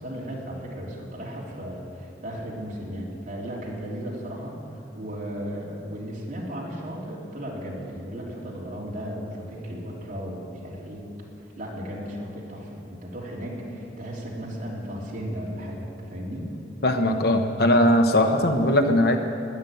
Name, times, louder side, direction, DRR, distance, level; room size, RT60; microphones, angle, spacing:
voice 1, 0.0-11.0 11.6-15.8 16.1-16.5, equal, 45° right, -4 dB, 3.4 m, -35 dB
voice 2, 16.8-19.2, left 1 dB, 60° left, 5 dB, 1.1 m, -20 dB
12.5 x 11.0 x 9.3 m, 2.9 s
head